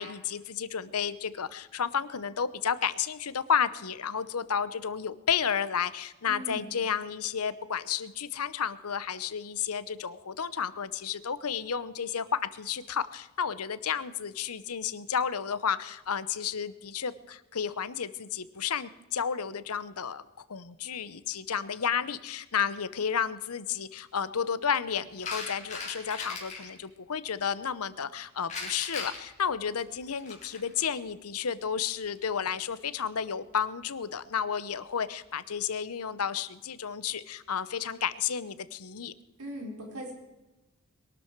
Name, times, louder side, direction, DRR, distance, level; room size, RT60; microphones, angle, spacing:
voice 1, 0.0-20.2 20.5-39.1, left 7 dB, 80° left, 16 dB, 0.8 m, -32 dB
voice 2, 6.3-6.7 39.4-40.1, equal, 90° right, 0 dB, 4.2 m, -39 dB
sound 1, 25.2-26.7 28.5-30.8 32.0-32.2, left 4 dB, 35° left, 4.1 m, -38 dB
22.0 x 12.5 x 4.6 m, 1.1 s
head